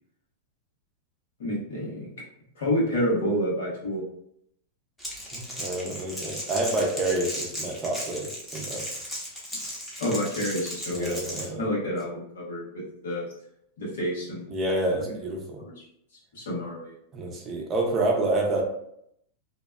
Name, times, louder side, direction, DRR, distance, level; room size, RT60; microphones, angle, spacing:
voice 1, 1.4-2.1 2.5-4.0 10.0-11.2 11.6-13.3 13.8-14.5 15.6-15.8 16.3-16.9, equal, 80° left, -5 dB, 1.2 m, -29 dB
Crackle, 5.0-11.5, equal, 5° left, 0.9 m, -36 dB
voice 2, 5.3-8.9 10.9-11.6 14.5-15.6 17.1-18.6, right 2 dB, 30° right, 1 dB, 0.6 m, -28 dB
2.7 x 2.2 x 2.2 m, 0.74 s
hypercardioid pair, 105°, 0 cm